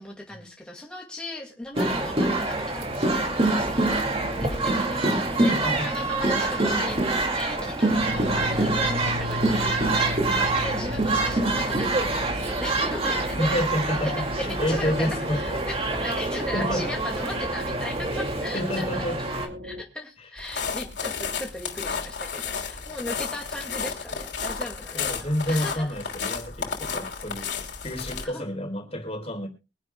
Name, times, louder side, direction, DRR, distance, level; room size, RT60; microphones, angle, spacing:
voice 1, 0.0-4.0 4.4-13.6 13.9-14.1 14.4-19.0 19.6-25.9 28.2-28.5, left 1 dB, 5° left, -1 dB, 2.1 m, -37 dB
sound 1, 1.8-19.5, right 2 dB, 30° right, 2.5 m, -26 dB
voice 2, 3.9-6.1 7.5-7.7 10.8-10.9 13.4-15.6 16.5-16.9 18.5-19.2 20.2-20.3 24.9-29.5, equal, 35° left, 6 dB, 3.7 m, -30 dB
sound 2, 7.8-19.8, left 1 dB, 75° right, 1.8 m, -35 dB
sound 3, 20.4-28.3, left 6 dB, 70° left, 3.1 m, -32 dB
23.5 x 11.0 x 2.3 m, 0.30 s
head